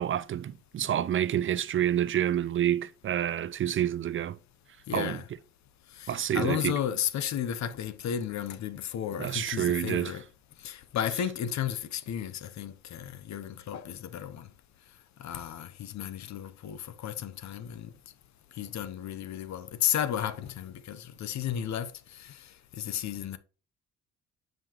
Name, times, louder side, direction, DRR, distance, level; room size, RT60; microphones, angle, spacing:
voice 1, 0.0-4.4 4.9-5.2 6.1-6.8 9.2-10.2, right 11 dB, 45° right, 0.4 m, -28 dB
voice 2, 4.9-5.3 6.0-10.2 10.6-14.5 15.2-17.9 18.6-22.5 22.7-23.4, left 9 dB, 65° left, 0.8 m, -33 dB
7.5 x 5.3 x 2.9 m
cardioid pair, 90°, 30 cm